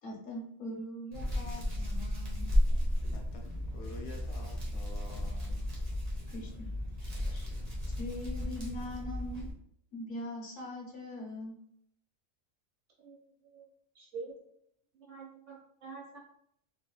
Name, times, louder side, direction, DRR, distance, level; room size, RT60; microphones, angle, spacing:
voice 1, 0.0-2.5 6.3-6.7 8.0-9.5 9.9-11.6, left 1 dB, 65° left, -1 dB, 1.2 m, -41 dB
Hands, 1.1-9.5, left 1 dB, 35° right, 0.8 m, -34 dB
voice 2, 3.1-5.9 7.2-7.5, left 2 dB, 85° left, 2 dB, 1.2 m, -50 dB
voice 3, 13.0-13.7 13.9-14.6 15.0-16.2, right 4 dB, 60° right, -3 dB, 1.3 m, -47 dB
3.3 x 3.2 x 2.2 m, 0.69 s
omnidirectional pair, 1.4 m